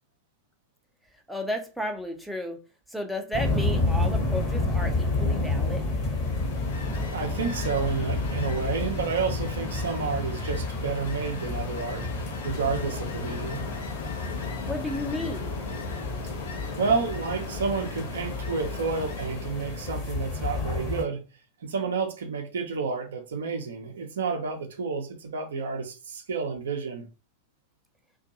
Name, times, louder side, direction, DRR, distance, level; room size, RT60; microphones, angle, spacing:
voice 1, 1.3-2.6 2.9-5.9 14.7-15.5, left 1 dB, ahead, 0.5 m, -33 dB
sound 1, 3.3-21.0, left 2 dB, 35° left, 1.0 m, -30 dB
Ocean, 6.1-20.2, left 4 dB, 60° left, 0.5 m, -39 dB
voice 2, 7.1-12.1 12.4-13.7 16.8-21.3 21.6-27.1, right 5 dB, 65° right, 0.5 m, -30 dB
2.5 x 2.3 x 2.6 m
figure-of-eight pair, 90°, 0 cm